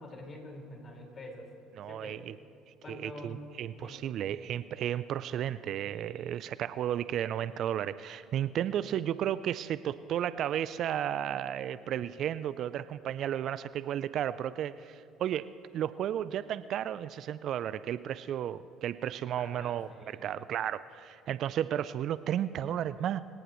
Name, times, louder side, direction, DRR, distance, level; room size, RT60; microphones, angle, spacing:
voice 1, 0.0-1.5 1.9-2.2 2.8-3.4 3.8-4.2 19.4-20.2, left 1 dB, 35° left, 0 dB, 4.8 m, -46 dB
voice 2, 1.8-2.3 2.9-23.2, right 10 dB, 55° right, 16 dB, 0.4 m, -33 dB
26.0 x 17.5 x 3.1 m, 2.3 s
hypercardioid pair, 65°, 0 cm